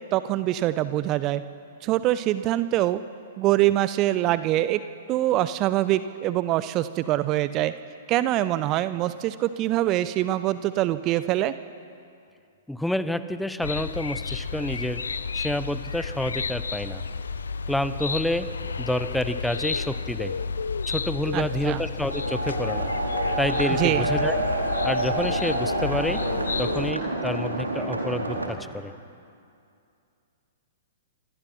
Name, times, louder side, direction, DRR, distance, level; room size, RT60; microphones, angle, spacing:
voice 1, 0.1-1.4 1.8-3.0 3.4-4.8 5.1-7.7 8.1-11.5 21.3-21.8 23.7-24.1, right 14 dB, 30° right, 14 dB, 0.7 m, -24 dB
voice 2, 12.7-15.0 15.3-17.0 17.7-18.5 18.8-20.4 20.9-22.9 23.4-24.4 24.8-26.2 26.6-28.9, left 1 dB, ahead, 13 dB, 0.9 m, -28 dB
sound 1, 13.6-26.9, left 5 dB, 65° left, 0.8 m, -31 dB
sound 2, 22.1-28.5, right 2 dB, 80° right, 3.8 m, -28 dB
29.0 x 26.0 x 5.8 m, 2.4 s
figure-of-eight pair, 110°, 0 cm